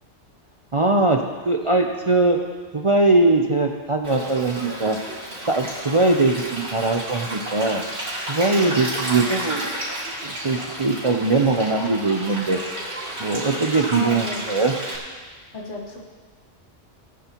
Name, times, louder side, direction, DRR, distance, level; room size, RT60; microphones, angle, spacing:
voice 1, 0.7-2.4 2.7-5.0 5.5-7.8 8.3-9.7 10.2-12.6 13.2-14.7, right 3 dB, 35° right, 2 dB, 0.5 m, -21 dB
Stream, 4.0-15.0, right 1 dB, 55° right, 3.1 m, -32 dB
voice 2, 13.9-14.4 15.5-16.0, left 2 dB, 70° left, -2 dB, 2.0 m, -31 dB
19.0 x 9.3 x 3.0 m, 1.5 s
omnidirectional pair, 1.3 m